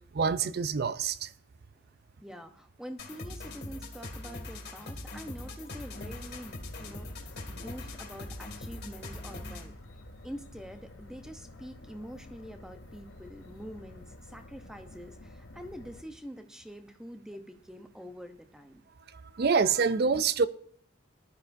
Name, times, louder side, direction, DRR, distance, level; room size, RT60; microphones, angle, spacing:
voice 1, 0.1-1.3 19.3-20.5, right 5 dB, 50° right, 0.4 m, -26 dB
voice 2, 2.2-9.8 10.2-18.8, equal, 5° right, 0.7 m, -45 dB
sound 1, 3.0-9.8, left 2 dB, 55° left, 2.1 m, -42 dB
sound 2, 6.0-16.0, left 2 dB, 75° left, 1.0 m, -50 dB
19.5 x 11.5 x 2.6 m
head